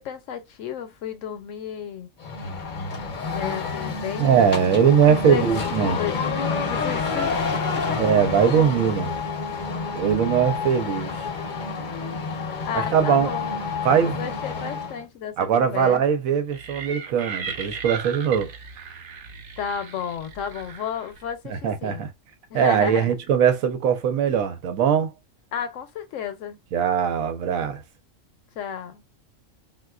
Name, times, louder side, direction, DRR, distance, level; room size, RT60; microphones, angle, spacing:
voice 1, 0.0-2.1 3.1-5.4 5.7-7.4 7.9-8.0 12.6-13.6 14.0-16.0 19.6-22.1 22.5-23.1 25.5-26.6 28.6-29.0, left 8 dB, 75° left, 1.0 m, -33 dB
sound 1, 2.2-15.0, left 4 dB, 45° left, 0.7 m, -28 dB
voice 2, 4.2-6.0 8.0-9.1 9.9-11.1 12.7-13.3 13.8-14.2 15.4-18.5 21.4-22.1 22.5-25.1 26.7-27.8, right 7 dB, 85° right, 1.1 m, -21 dB
sound 2, 16.5-21.3, right 6 dB, 55° right, 0.6 m, -37 dB
3.7 x 2.5 x 2.3 m
omnidirectional pair, 1.4 m